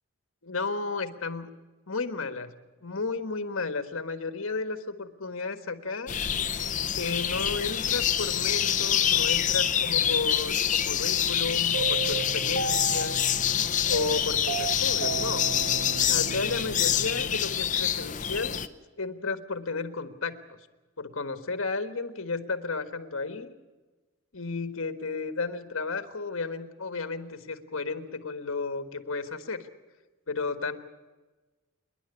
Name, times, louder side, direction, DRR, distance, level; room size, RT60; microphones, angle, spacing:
voice 1, 0.4-1.5 1.9-2.5 2.8-6.1 7.0-13.2 13.9-15.5 16.1-18.7 19.0-20.6 21.0-23.5 24.3-29.7 30.3-30.8, left 4 dB, 70° left, 9 dB, 1.5 m, -33 dB
sound 1, 6.1-18.7, left 9 dB, 35° left, 0.6 m, -26 dB
sound 2, 11.7-17.9, right 5 dB, 85° right, 0.8 m, -35 dB
27.5 x 11.0 x 9.7 m, 1.2 s
head